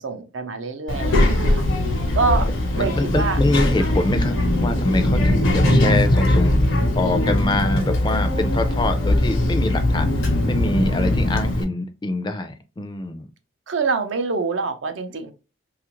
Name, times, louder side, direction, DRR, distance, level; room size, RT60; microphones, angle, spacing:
voice 1, 0.0-1.7 2.1-2.5 2.7-3.4 13.7-15.3, right 4 dB, 75° right, 0.5 m, -25 dB
Child speech kid speaking, 0.9-11.6, left 1 dB, 85° left, 0.8 m, -20 dB
voice 2, 2.7-6.5 6.9-13.3, left 2 dB, 25° left, 0.3 m, -25 dB
2.8 x 2.4 x 2.9 m
head